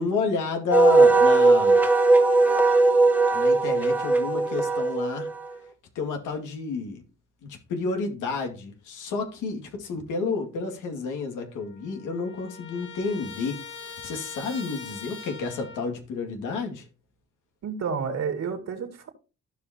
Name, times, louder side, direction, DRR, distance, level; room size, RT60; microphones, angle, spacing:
voice 1, 0.0-1.8 3.3-5.3 5.9-7.0 7.4-16.9, left 4 dB, 85° left, 2.3 m, -30 dB
Wind instrument woodwind instrument, 0.7-5.5, right 3 dB, 5° right, 1.1 m, -19 dB
Trumpet, 11.2-11.3 11.5-16.0, left 5 dB, 40° left, 2.3 m, -42 dB
voice 2, 17.6-19.1, right 6 dB, 60° right, 2.4 m, -30 dB
15.0 x 5.4 x 2.9 m
cardioid pair, 90°, 30 cm